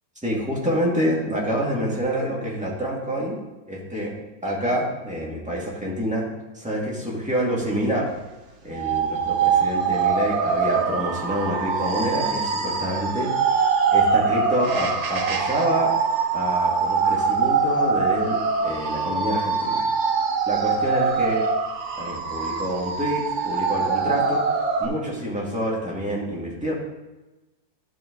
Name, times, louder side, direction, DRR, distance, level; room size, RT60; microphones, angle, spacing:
voice 1, 0.2-3.4 3.7-4.2 4.4-6.3 6.5-8.1 8.6-15.9 16.3-19.8 20.5-21.5 22.0-24.4 24.8-26.7, equal, 5° right, -4 dB, 2.0 m, -27 dB
sound 1, 8.7-24.9, right 5 dB, 55° right, 0.9 m, -23 dB
12.0 x 5.6 x 3.9 m, 1.1 s
omnidirectional pair, 2.0 m